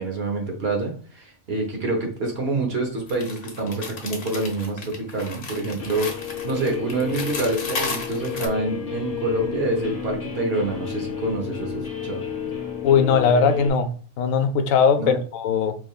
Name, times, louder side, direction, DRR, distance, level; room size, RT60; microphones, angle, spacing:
voice 1, 0.0-12.2 15.0-15.2, right 2 dB, 50° right, 1.2 m, -27 dB
sound 1, 3.1-8.5, left 4 dB, 55° left, 1.0 m, -34 dB
Guitar, 5.8-13.7, left 8 dB, 35° left, 0.7 m, -32 dB
voice 2, 12.8-13.9 14.2-15.8, left 6 dB, 85° left, 1.0 m, -19 dB
5.1 x 3.2 x 2.3 m
omnidirectional pair, 1.4 m